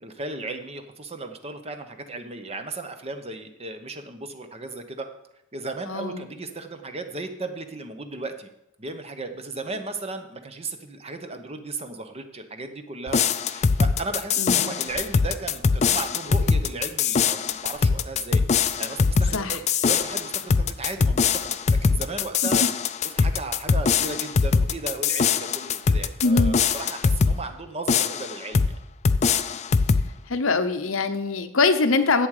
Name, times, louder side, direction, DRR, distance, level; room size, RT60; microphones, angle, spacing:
voice 1, 0.0-5.1 5.5-8.5 8.8-18.4 18.8-22.6 23.0-28.8, right 3 dB, 30° right, 7 dB, 0.8 m, -35 dB
voice 2, 5.9-6.3 14.4-14.7 19.3-19.6 22.4-22.7 26.2-26.6 30.3-32.3, left 3 dB, 65° left, 10 dB, 0.8 m, -23 dB
sound 1, 13.1-27.4 27.9-28.7 29.0-30.1, left 5 dB, 30° left, 0.3 m, -22 dB
sound 2, 14.8-15.3 16.2-16.7 17.5-18.0 18.7-18.9 19.2-19.4 20.0-20.2 21.4-21.6, left 1 dB, 45° right, 1.6 m, -45 dB
11.0 x 8.0 x 4.9 m, 0.82 s
head